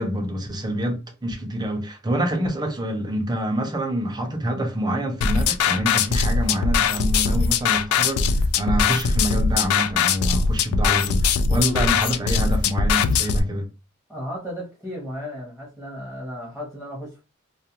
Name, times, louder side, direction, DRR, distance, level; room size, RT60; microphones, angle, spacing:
voice 1, 0.0-13.7, equal, 20° right, 0.5 m, -26 dB
sound 1, 5.2-13.4, left 5 dB, 85° left, 0.3 m, -21 dB
voice 2, 14.1-17.2, equal, 5° left, 0.9 m, -34 dB
2.3 x 2.2 x 2.8 m
head